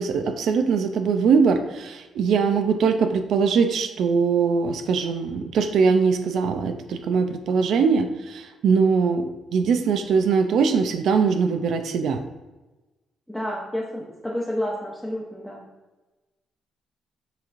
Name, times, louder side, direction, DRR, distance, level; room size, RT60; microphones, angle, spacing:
voice 1, 0.0-12.2, right 5 dB, 70° right, 7 dB, 0.4 m, -21 dB
voice 2, 13.3-15.6, left 1 dB, 5° left, -5 dB, 0.8 m, -30 dB
6.8 x 3.0 x 2.4 m, 1.1 s
cardioid pair, 90°, 0 cm